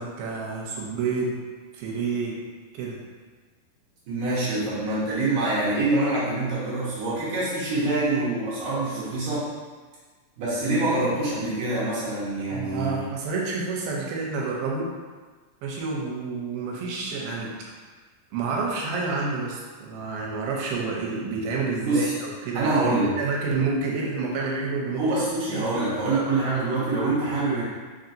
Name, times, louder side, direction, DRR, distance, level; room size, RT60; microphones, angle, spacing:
voice 1, 0.0-1.3 1.7-2.4 2.7-3.0 12.5-14.9 15.6-17.5 18.3-25.0, right 4 dB, 80° right, -2 dB, 2.5 m, -29 dB
voice 2, 4.1-9.5 10.4-13.1 21.8-22.1 22.5-23.2 24.9-27.6, right 2 dB, 65° right, -9 dB, 2.1 m, -25 dB
5.3 x 2.8 x 2.5 m, 1.4 s
omnidirectional pair, 4.1 m